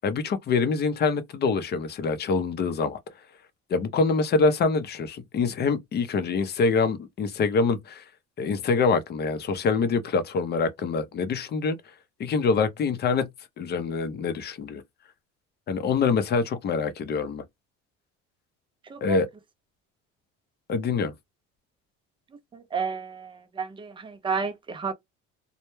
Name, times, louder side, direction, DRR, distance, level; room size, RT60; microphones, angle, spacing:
voice 1, 0.0-3.0 3.7-8.0 8.4-11.8 12.2-13.3 13.6-14.8 15.7-17.4 19.0-19.3 20.7-21.1, left 4 dB, 35° left, 0.5 m, -25 dB
voice 2, 22.5-24.9, right 5 dB, 15° right, 0.4 m, -31 dB
2.1 x 2.1 x 3.0 m
cardioid pair, 120°, 30 cm